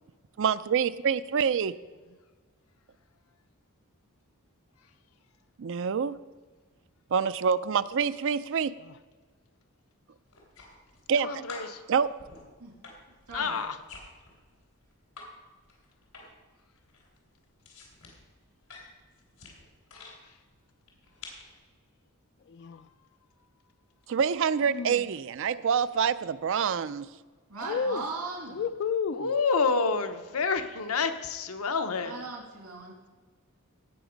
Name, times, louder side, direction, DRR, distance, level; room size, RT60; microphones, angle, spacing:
voice 1, 0.4-1.7 5.6-6.2 7.1-8.7 11.1-11.4 11.9-12.1 24.1-27.1, right 6 dB, 60° right, 0.4 m, -26 dB
sound 1, 10.3-11.2 11.5-15.3 15.6-16.5 16.8-20.2 20.8-21.5, left 3 dB, 90° left, 3.5 m, -49 dB
voice 2, 11.2-11.8 13.3-13.8 29.1-32.1, left 4 dB, 75° left, 0.9 m, -28 dB
voice 3, 13.3-13.6 27.5-28.6 32.0-32.9, right 3 dB, 80° right, 2.4 m, -38 dB
voice 4, 22.5-22.9 24.7-25.1 27.6-28.0 28.5-29.4, left 6 dB, 50° left, 0.3 m, -32 dB
17.5 x 6.0 x 5.2 m
head